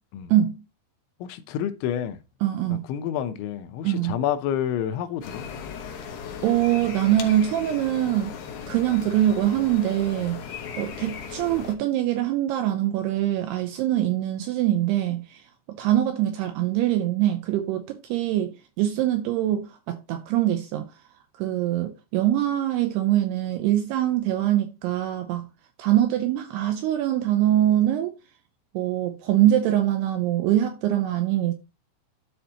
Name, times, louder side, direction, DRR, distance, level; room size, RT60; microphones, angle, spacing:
voice 1, 0.3-0.6 2.4-2.8 3.8-4.2 6.4-8.3 8.7-20.9 21.4-25.5 25.8-28.1 28.7-31.5, right 12 dB, 85° right, 2.4 m, -23 dB
voice 2, 1.2-2.2 2.7-5.5, left 10 dB, 85° left, 3.1 m, -29 dB
sound 1, 5.2-11.7, left 7 dB, 70° left, 2.5 m, -37 dB
12.5 x 4.2 x 2.8 m
omnidirectional pair, 5.3 m